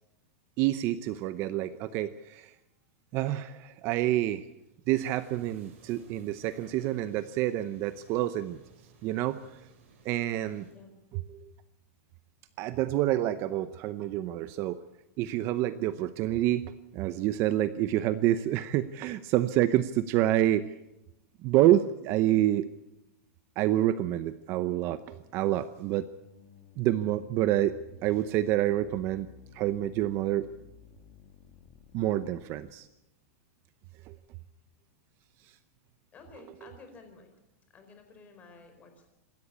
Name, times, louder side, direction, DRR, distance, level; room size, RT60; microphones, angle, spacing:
voice 1, 0.6-2.5 3.1-4.5 4.9-8.6 9.0-9.7 10.0-10.7 11.1-11.5 12.6-14.8 15.2-20.7 21.4-22.7 23.6-26.1 26.8-27.7 28.0-29.3 29.5-30.5 31.9-32.9 34.1-34.2, right 13 dB, 30° right, 13 dB, 0.7 m, -28 dB
sound 1, 4.9-10.7, right 4 dB, 60° right, 6.9 m, -58 dB
sound 2, 24.0-32.7, left 8 dB, 40° left, 2.6 m, -55 dB
voice 2, 36.1-37.3 37.7-39.1, left 4 dB, 20° left, 6 dB, 4.5 m, -52 dB
26.5 x 13.0 x 8.6 m, 0.88 s
supercardioid pair, 160°, 8 cm